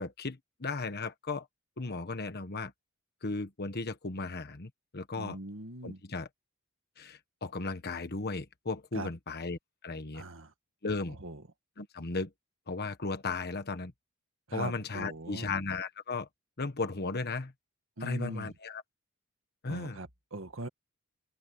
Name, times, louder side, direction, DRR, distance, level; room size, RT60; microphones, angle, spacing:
voice 1, 0.0-1.5 1.8-2.7 3.2-5.4 5.8-6.3 7.0-10.2 10.8-11.2 11.8-12.3 12.7-13.9 14.5-16.3 16.6-17.5 18.0-18.8 19.6-20.0, left 3 dB, 50° left, 1.3 m, -35 dB
voice 2, 5.2-6.0 8.9-9.1 10.1-10.5 11.1-11.4 14.5-15.6 18.0-18.5 19.7-20.7, right 2 dB, 65° right, 2.2 m, -41 dB
open air
head